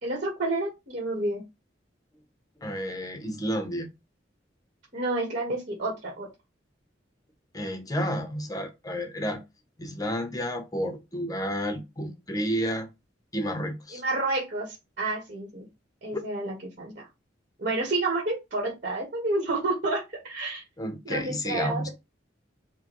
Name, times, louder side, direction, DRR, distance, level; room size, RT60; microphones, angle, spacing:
voice 1, 0.0-1.4 4.9-6.3 13.9-15.7 16.0-17.1 17.6-20.6 21.0-21.9, right 2 dB, 45° right, 1.4 m, -30 dB
voice 2, 2.6-3.9 7.5-9.4 9.8-12.9 13.3-14.0 20.8-21.9, equal, 20° left, 0.7 m, -31 dB
4.7 x 2.2 x 2.9 m
head